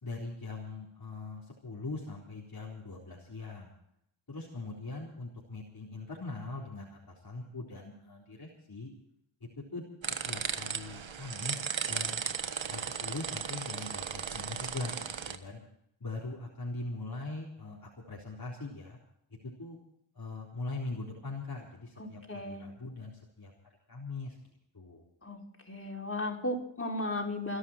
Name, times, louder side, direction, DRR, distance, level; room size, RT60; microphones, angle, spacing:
voice 1, 0.0-3.7 4.3-8.9 9.4-9.8 10.2-11.6 11.9-12.2 12.7-15.6 16.0-19.0 19.6-19.8 20.2-23.5 23.9-24.4 24.7-25.0, left 3 dB, 45° left, -4 dB, 4.1 m, -41 dB
sound 1, 10.0-15.4, right 7 dB, 65° right, 1.5 m, -36 dB
voice 2, 22.0-22.7 25.2-25.4 25.7-27.6, left 1 dB, 25° left, -1 dB, 5.6 m, -35 dB
28.0 x 11.0 x 4.4 m, 0.73 s
cardioid pair, 55°, 49 cm